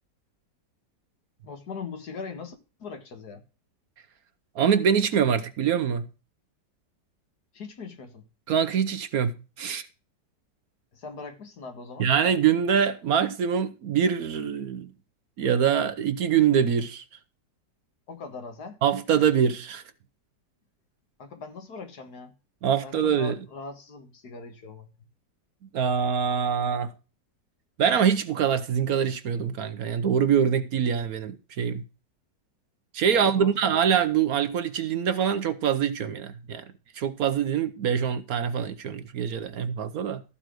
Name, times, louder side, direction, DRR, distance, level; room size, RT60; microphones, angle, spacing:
voice 1, 1.4-3.4 7.5-8.2 10.9-12.1 18.1-18.8 21.2-22.3 22.8-24.9 33.1-33.8, left 4 dB, 65° left, 2.1 m, -40 dB
voice 2, 4.5-6.1 8.5-9.9 12.0-14.9 15.4-17.0 18.8-19.8 22.6-23.4 25.7-26.9 27.8-31.9 32.9-40.2, right 8 dB, 65° right, 1.1 m, -24 dB
14.0 x 4.7 x 6.3 m
omnidirectional pair, 1.9 m